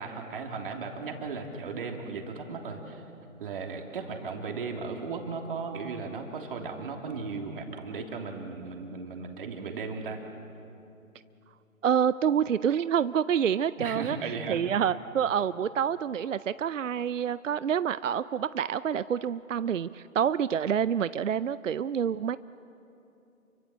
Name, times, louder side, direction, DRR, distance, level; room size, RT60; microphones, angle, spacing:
voice 1, 0.0-3.0 3.4-10.2 13.8-14.6, right 4 dB, 40° right, 2 dB, 3.2 m, -36 dB
voice 2, 11.8-22.4, right 8 dB, 60° right, 16 dB, 0.6 m, -27 dB
29.5 x 24.0 x 7.9 m, 2.8 s
figure-of-eight pair, 150°, 42 cm